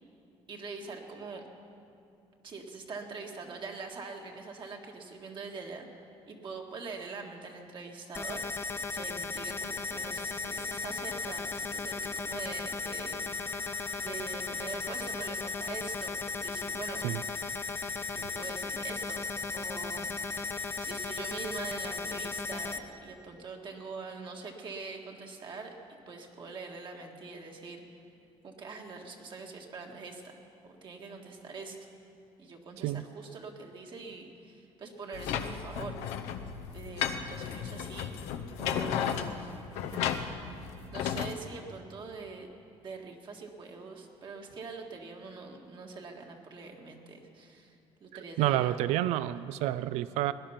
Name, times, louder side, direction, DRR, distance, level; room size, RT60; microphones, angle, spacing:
voice 1, 0.5-1.4 2.4-5.9 6.3-13.3 14.0-17.0 18.1-19.2 19.5-20.1 20.8-27.8 28.4-30.4 30.6-31.8 32.4-36.0 36.7-38.1 38.6-39.6 39.8-40.3 40.9-42.5 42.8-47.8 48.0-49.2, right 4 dB, 45° right, 2 dB, 1.8 m, -43 dB
sound 1, 8.1-22.8, left 4 dB, 20° left, 0.8 m, -36 dB
sound 2, 35.1-41.3, left 8 dB, 90° left, 0.8 m, -34 dB
voice 2, 48.4-50.3, right 14 dB, 80° right, 16 dB, 0.4 m, -29 dB
18.5 x 10.5 x 5.8 m, 2.6 s
cardioid pair, 105°, 11 cm